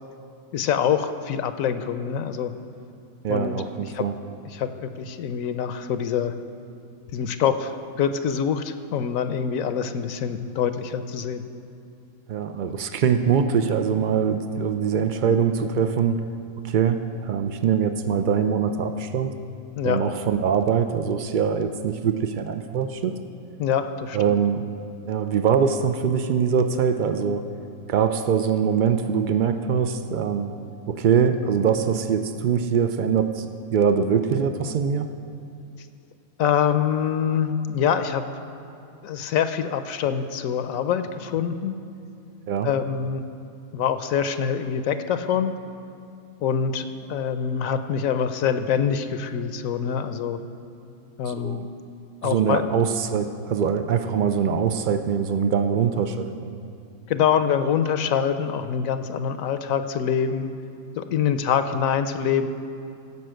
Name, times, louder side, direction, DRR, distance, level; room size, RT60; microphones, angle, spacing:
voice 1, 0.5-2.5 3.3-3.5 3.9-4.0 4.5-6.3 7.1-11.4 19.8-20.0 23.6-24.2 36.4-38.2 39.0-41.7 42.6-43.3 43.7-45.5 46.4-50.4 51.2-51.6 52.2-52.6 57.1-60.5 61.0-62.5, left 8 dB, 75° left, 10 dB, 1.0 m, -25 dB
voice 2, 3.2-4.2 12.3-16.2 16.7-19.3 19.8-23.1 24.1-24.7 25.1-27.4 27.9-30.5 30.9-35.1 42.5-42.7 51.3-51.7 52.2-56.5, right 7 dB, 85° right, 8 dB, 0.4 m, -23 dB
15.0 x 5.5 x 7.7 m, 2.6 s
omnidirectional pair, 1.5 m